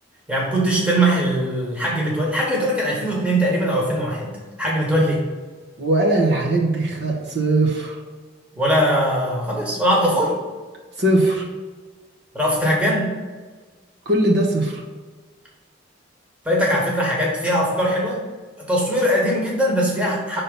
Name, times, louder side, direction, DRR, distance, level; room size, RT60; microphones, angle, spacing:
voice 1, 0.3-4.3 4.6-5.2 8.5-10.3 12.3-13.2 16.4-18.2 18.6-20.4, equal, 5° right, -4 dB, 1.3 m, -21 dB
voice 2, 5.8-7.9 11.0-11.5 14.1-14.8, right 1 dB, 60° right, -2 dB, 1.1 m, -20 dB
5.7 x 3.7 x 5.3 m, 1.4 s
head